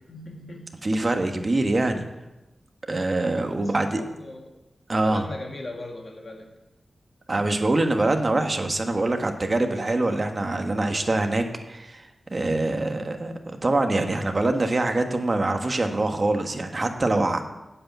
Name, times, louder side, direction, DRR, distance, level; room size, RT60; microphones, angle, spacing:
voice 1, 0.0-0.7 3.6-4.5 5.0-6.5, left 2 dB, 40° left, 1 dB, 2.2 m, -39 dB
voice 2, 0.8-2.0 2.9-4.0 4.9-5.2 7.3-12.0 12.3-17.4, right 2 dB, 35° right, 5 dB, 1.2 m, -24 dB
9.6 x 8.3 x 8.2 m, 1.0 s
wide cardioid pair, 135°, 0 cm